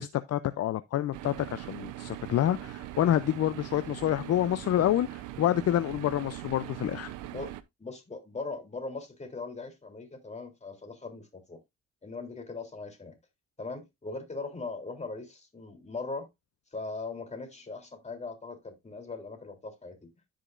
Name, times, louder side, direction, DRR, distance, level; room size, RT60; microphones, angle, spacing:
voice 1, 0.0-7.1, left 12 dB, 55° left, 0.5 m, -28 dB
sound 1, 1.1-7.6, right 15 dB, 90° right, 0.7 m, -41 dB
voice 2, 7.8-11.6 12.0-13.2 13.6-16.3 16.7-20.0, left 3 dB, 20° left, 3.3 m, -39 dB
14.0 x 5.1 x 2.5 m
cardioid pair, 90°, 30 cm